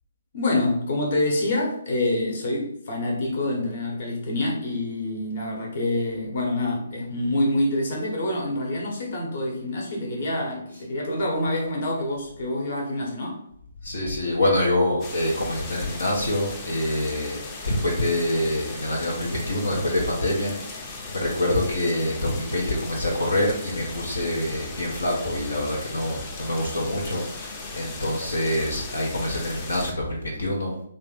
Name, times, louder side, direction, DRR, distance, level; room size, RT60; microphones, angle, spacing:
voice 1, 0.3-13.4, left 1 dB, 50° left, 0 dB, 1.1 m, -26 dB
voice 2, 13.8-17.4 17.6-20.5 21.1-27.2 27.7-30.7, left 1 dB, 75° left, -2 dB, 0.9 m, -25 dB
sound 1, 15.0-29.9, left 3 dB, 25° left, 0.6 m, -37 dB
3.2 x 2.6 x 4.0 m, 0.69 s
figure-of-eight pair, 135°, 0 cm